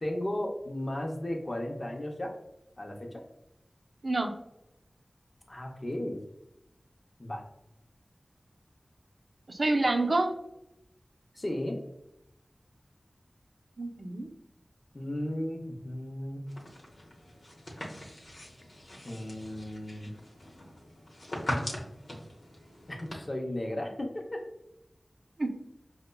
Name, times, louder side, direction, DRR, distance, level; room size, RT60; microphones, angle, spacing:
voice 1, 0.0-2.3 2.8-3.2 5.5-6.2 7.2-7.4 11.3-11.8 14.9-16.5 19.0-20.1 22.9-24.4, left 1 dB, 40° left, 2 dB, 0.6 m, -35 dB
voice 2, 4.0-4.3 9.5-10.4 13.8-14.3 25.4-25.5, right 2 dB, 65° right, 3 dB, 0.5 m, -27 dB
sound 1, 16.5-23.1, left 1 dB, 85° left, 0.7 m, -40 dB
5.3 x 2.1 x 2.2 m, 0.83 s
wide cardioid pair, 70°, 0 cm